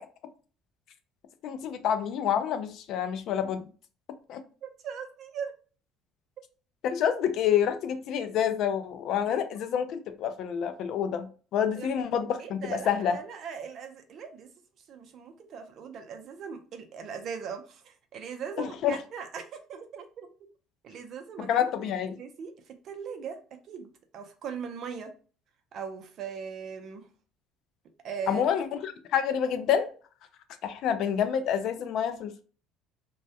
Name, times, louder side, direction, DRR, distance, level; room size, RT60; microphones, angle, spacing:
voice 1, 1.4-3.7 4.3-4.4 6.8-11.3 11.5-13.2 18.6-19.0 21.4-22.1 28.3-29.9 30.6-32.4, left 8 dB, 60° left, 0.4 m, -28 dB
voice 2, 4.6-5.5 11.8-11.9 12.4-14.5 14.9-20.3 20.8-21.9 22.2-25.1 25.7-27.1 28.0-28.4, right 7 dB, 50° right, 0.5 m, -39 dB
2.2 x 2.1 x 2.7 m
cardioid pair, 120°, 0 cm